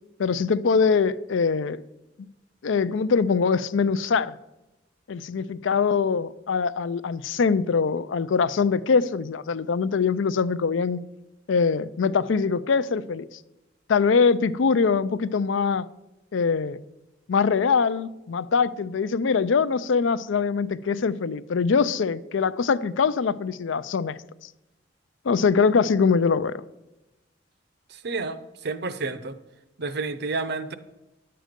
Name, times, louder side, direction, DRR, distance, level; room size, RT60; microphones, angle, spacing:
voice 1, 0.2-1.8 2.6-4.4 5.1-11.0 11.5-13.3 13.9-15.9 16.3-16.8 17.3-24.2 25.2-26.6, left 5 dB, 75° left, 0.4 m, -23 dB
voice 2, 27.9-29.4 29.8-30.7, right 3 dB, 55° right, 0.6 m, -30 dB
10.0 x 7.7 x 5.1 m
head